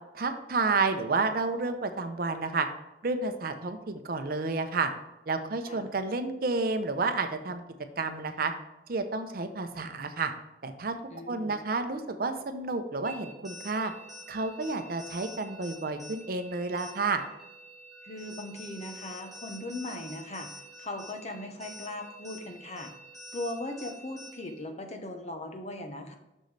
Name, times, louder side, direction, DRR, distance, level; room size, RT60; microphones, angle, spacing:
voice 1, 0.1-2.7 3.0-4.9 5.3-7.6 8.0-8.5 8.9-10.3 10.6-10.9 11.3-13.9 14.3-17.2, right 3 dB, 55° right, 8 dB, 0.7 m, -30 dB
voice 2, 11.1-11.6 18.0-22.9 23.3-26.2, left 1 dB, 40° left, 5 dB, 0.9 m, -39 dB
sound 1, 13.0-24.6, equal, ahead, 1.5 m, -48 dB
6.5 x 6.5 x 3.3 m, 0.96 s
head